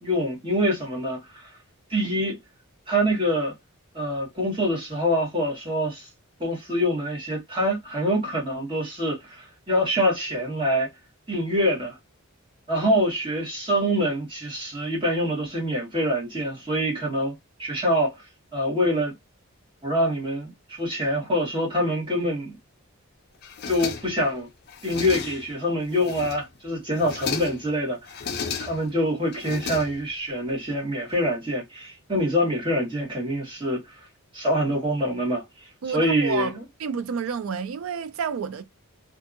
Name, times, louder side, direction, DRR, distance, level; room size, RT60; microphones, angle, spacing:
voice 1, 0.0-1.4 1.9-2.4 2.9-3.5 3.9-6.1 6.4-10.9 11.3-12.0 12.7-17.3 17.6-18.1 18.5-19.1 19.8-22.6 23.6-24.5 24.8-28.0 28.3-33.8 34.3-35.4 35.9-36.6, equal, 20° right, 1.3 m, -25 dB
sound 1, 23.4-24.3 24.7-25.6 25.9-26.6 26.9-27.7 28.1-28.9 29.3-30.3, left 5 dB, 45° left, 0.5 m, -34 dB
voice 2, 35.8-36.5 36.8-38.6, right 6 dB, 70° right, 0.4 m, -29 dB
2.7 x 2.5 x 2.4 m
head